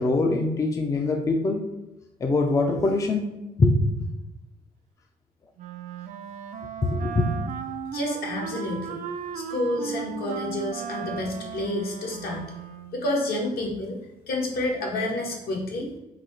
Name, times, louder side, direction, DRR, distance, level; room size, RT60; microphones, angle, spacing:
voice 1, 0.0-1.6 2.2-3.3 3.6-3.8 6.8-7.3, left 3 dB, 20° left, 3 dB, 0.4 m, -23 dB
Wind instrument woodwind instrument, 5.6-13.1, right 7 dB, 50° right, 0.4 m, -36 dB
voice 2, 7.9-9.0 9.3-12.4 12.9-14.0 14.3-15.9, left 1 dB, 70° left, 0 dB, 1.2 m, -29 dB
3.9 x 2.7 x 4.4 m, 0.99 s
cardioid pair, 145°, 16 cm